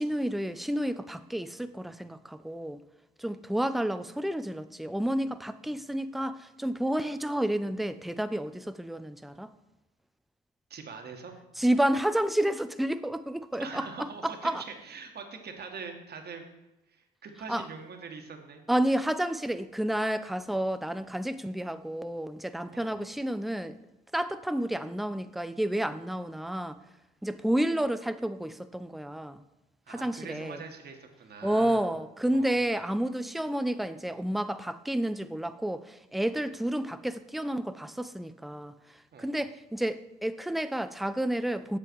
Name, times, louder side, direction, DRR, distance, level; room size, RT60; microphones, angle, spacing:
voice 1, 0.0-2.8 3.2-9.5 11.6-14.6 17.5-17.7 18.7-23.8 24.1-26.8 27.2-29.4 29.9-30.6 31.4-38.7 39.2-41.8, right 1 dB, ahead, 12 dB, 0.5 m, -30 dB
voice 2, 10.7-11.3 13.6-16.4 16.9-18.6 22.7-23.0 29.9-31.9 32.3-32.6 39.1-39.4, right 5 dB, 55° right, 4 dB, 1.7 m, -43 dB
7.8 x 7.6 x 4.7 m, 1.0 s
supercardioid pair, 65°, 20 cm